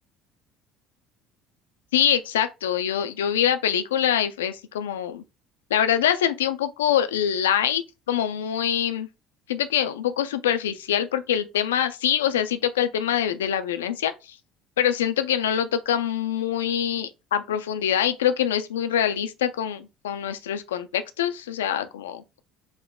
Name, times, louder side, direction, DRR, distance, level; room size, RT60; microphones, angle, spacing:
voice 1, 1.9-5.2 5.7-7.8 8.1-9.1 9.5-14.4 14.8-22.4, left 9 dB, 85° left, 0.4 m, -24 dB
4.7 x 2.2 x 3.6 m
hypercardioid pair, 65°, 0 cm